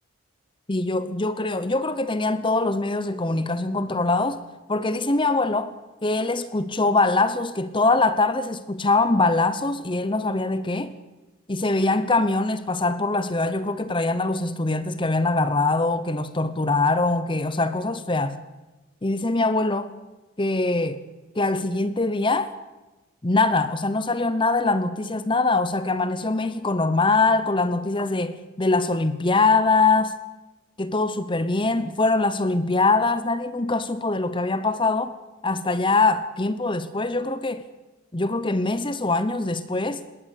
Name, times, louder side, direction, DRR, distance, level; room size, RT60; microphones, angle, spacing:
voice 1, 0.7-4.4 4.7-5.7 6.0-10.9 11.5-18.4 19.0-19.9 20.4-21.0 21.3-22.5 23.2-30.1 30.8-35.2 35.4-37.7 38.1-40.0, left 3 dB, 25° left, 0.8 m, -23 dB
20.5 x 18.0 x 8.3 m
head